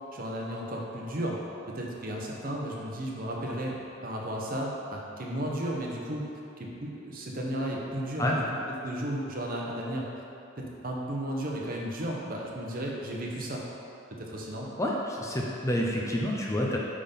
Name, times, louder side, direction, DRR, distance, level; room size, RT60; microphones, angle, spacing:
voice 1, 0.1-1.4 1.7-6.3 6.6-10.1 10.6-13.6 14.2-14.7, right 1 dB, 45° right, -2 dB, 1.0 m, -34 dB
voice 2, 14.8-16.8, equal, 15° left, -3 dB, 0.6 m, -28 dB
8.4 x 3.8 x 5.3 m, 2.7 s
head